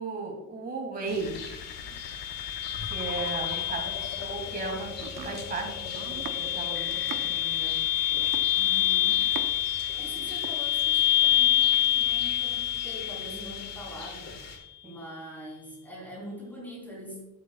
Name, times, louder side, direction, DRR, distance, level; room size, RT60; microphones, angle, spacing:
voice 1, 0.0-1.3 2.9-4.9 5.2-7.9 14.8-15.0, right 3 dB, 25° right, 0 dB, 1.9 m, -36 dB
Rain, 1.1-14.6, left 4 dB, 45° left, 1.5 m, -44 dB
sound 1, 1.2-14.2, left 12 dB, 90° left, 1.0 m, -28 dB
Domestic sounds home sounds, 4.9-9.7 10.0-10.6, right 8 dB, 70° right, 0.9 m, -43 dB
voice 2, 8.5-9.2 10.0-17.2, equal, 5° left, -4 dB, 3.4 m, -43 dB
11.0 x 9.2 x 2.3 m, 0.91 s
cardioid pair, 175°, 36 cm